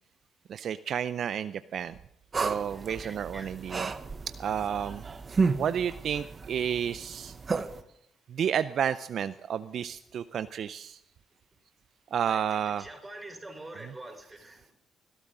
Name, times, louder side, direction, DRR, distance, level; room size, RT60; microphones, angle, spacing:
voice 1, 0.5-2.0 2.4-3.9 4.4-5.0 5.6-7.3 8.3-11.0 12.1-12.9 13.8-13.9, right 8 dB, 65° right, 13 dB, 0.4 m, -31 dB
sound 1, 2.3-7.8, right 4 dB, 35° right, 1.0 m, -33 dB
voice 2, 2.9-3.5 4.0-4.2 7.6-7.8 12.3-14.6, right 2 dB, 15° right, 3 dB, 5.2 m, -46 dB
19.0 x 13.0 x 3.8 m, 0.76 s
cardioid pair, 75°, 0 cm